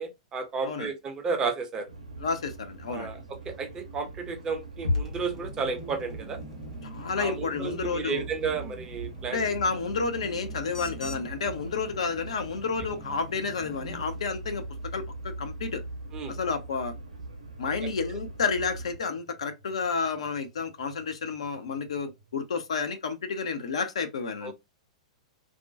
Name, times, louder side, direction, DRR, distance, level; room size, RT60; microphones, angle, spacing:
voice 1, 0.0-1.9 2.9-3.2 3.5-6.4 7.2-9.4 16.1-16.4 17.8-17.9 24.4-24.5, right 5 dB, 20° right, 0.5 m, -32 dB
sound 1, 1.9-19.0, right 2 dB, 80° right, 0.6 m, -42 dB
voice 2, 2.2-3.1 6.8-8.2 9.3-14.6 14.9-15.8 16.3-16.9 17.6-24.5, left 5 dB, 60° left, 0.5 m, -30 dB
sound 2, 4.8-23.1, left 2 dB, 90° left, 1.1 m, -42 dB
sound 3, 5.0-14.0, equal, 20° left, 0.7 m, -45 dB
2.4 x 2.1 x 2.4 m
figure-of-eight pair, 105°, 4 cm